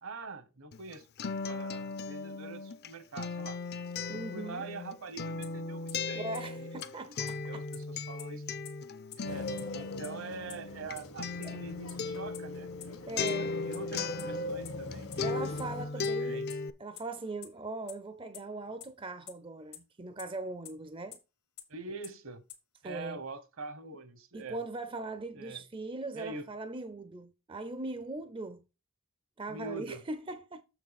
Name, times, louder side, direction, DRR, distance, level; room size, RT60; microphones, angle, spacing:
voice 1, 0.0-3.6 4.1-6.3 6.6-6.7 7.3-8.4 9.2-12.7 13.4-15.4 15.9-16.5 21.7-22.4 22.8-24.6 25.3-25.6 26.1-26.5 29.5-30.0, right 3 dB, 65° right, 1.0 m, -44 dB
Acoustic guitar, 0.7-14.9 15.2-16.7, left 4 dB, 45° left, 0.5 m, -37 dB
voice 2, 4.1-4.6 6.1-7.6 11.4-11.6 13.1-13.6 15.2-16.5 16.8-21.2 22.8-23.2 24.3-28.6 29.4-30.6, right 2 dB, 25° right, 0.4 m, -40 dB
sound 1, 5.4-5.5 5.9-6.0 6.3-6.4 6.8-6.9 7.3-7.4 7.7-7.8 8.2-8.3 8.6-8.7 9.1-9.2 9.6-9.7 10.0-10.1 10.5-10.6 11.0-11.1 11.4-11.5 11.9-12.0 12.3-12.4 12.8-12.9 13.3-13.4 13.7-13.8 14.2-14.3 14.6-14.7 15.1-15.2 15.6-15.7 16.0-16.1 16.5-16.6 17.0-17.1 17.4-17.5 17.9-18.0 18.3-18.4 18.8-18.9 19.3-19.4 19.7-19.8 20.2-20.3 20.6-20.7 21.1-21.2 21.6-21.7 22.0-22.1 22.5-22.6, left 13 dB, 85° left, 1.8 m, -44 dB
sound 2, 9.2-15.8, left 1 dB, 70° left, 1.4 m, -42 dB
6.8 x 6.1 x 4.0 m
head